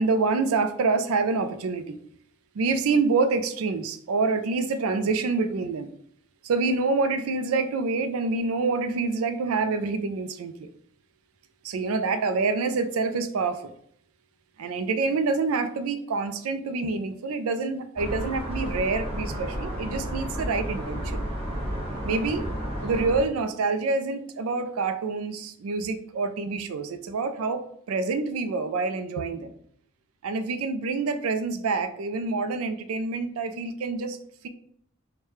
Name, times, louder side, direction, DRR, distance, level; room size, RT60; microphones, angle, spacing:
voice 1, 0.0-2.0 2.6-5.9 6.4-10.7 11.6-13.7 14.6-21.2 22.0-22.4 22.8-29.5 30.2-34.2, right 4 dB, 85° right, 10 dB, 0.4 m, -27 dB
sound 1, 18.0-23.2, equal, 30° right, 1.1 m, -32 dB
4.7 x 2.2 x 3.1 m, 0.67 s
head